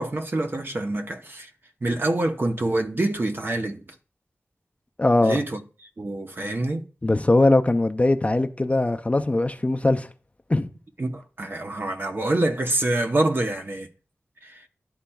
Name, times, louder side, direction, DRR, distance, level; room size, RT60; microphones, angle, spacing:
voice 1, 0.0-1.5 1.8-3.9 5.2-5.6 6.0-6.9 11.0-13.9 14.4-14.6, right 2 dB, 50° right, 0.8 m, -26 dB
voice 2, 5.0-5.4 7.0-10.1 10.5-10.7, left 2 dB, 25° left, 0.4 m, -20 dB
11.5 x 4.3 x 2.3 m
wide cardioid pair, 65°, 5 cm